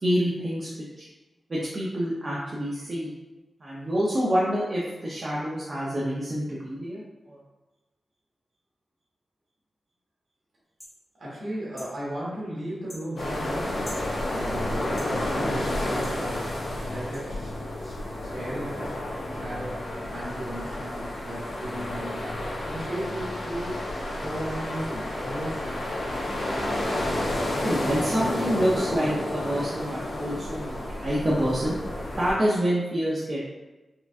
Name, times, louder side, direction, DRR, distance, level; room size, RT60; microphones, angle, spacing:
voice 1, 0.0-0.7 1.0-1.1 1.5-3.1 3.6-7.4 27.6-31.8 32.2-33.4, equal, 45° right, -7 dB, 0.7 m, -27 dB
sound 1, 10.8-11.0 11.8-11.9 12.9-13.1 13.8-14.1 15.0-15.1 16.0-16.2 17.1-17.2, equal, 25° left, 0.8 m, -43 dB
voice 2, 11.2-14.0 14.3-16.4 16.9-17.5 17.8-17.9 18.3-18.9 19.3-22.2 22.7-23.8 24.2-26.0, equal, 70° right, -8 dB, 1.3 m, -35 dB
sound 2, 13.2-32.3, left 1 dB, 85° left, 0.9 m, -31 dB
4.4 x 2.4 x 2.5 m, 1.1 s
cardioid pair, 75°, 0 cm